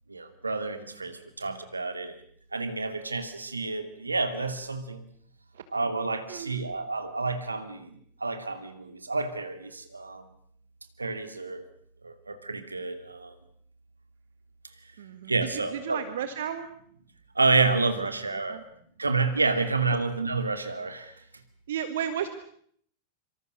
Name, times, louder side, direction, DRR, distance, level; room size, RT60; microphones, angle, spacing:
voice 1, 0.1-2.2 2.5-5.0 5.7-10.2 11.0-11.6 12.0-13.3 15.3-16.0 17.4-18.6 19.0-21.2, right 3 dB, 80° right, 9 dB, 2.6 m, -29 dB
voice 2, 6.3-6.6 15.0-16.7 18.0-18.6 21.7-22.3, right 9 dB, 60° right, 10 dB, 1.7 m, -34 dB
26.0 x 25.5 x 6.5 m, 0.63 s
figure-of-eight pair, 90°, 0 cm